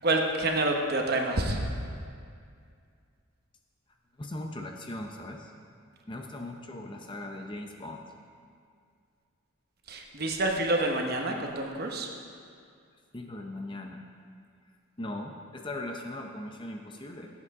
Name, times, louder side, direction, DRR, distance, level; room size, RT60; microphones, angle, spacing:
voice 1, 0.0-1.7 9.9-12.1, right 2 dB, 45° right, 2 dB, 1.0 m, -28 dB
voice 2, 4.2-5.5 6.1-8.1 13.1-14.0 15.0-17.3, left 1 dB, 20° left, 2 dB, 0.6 m, -39 dB
17.0 x 8.1 x 3.6 m, 2.3 s
head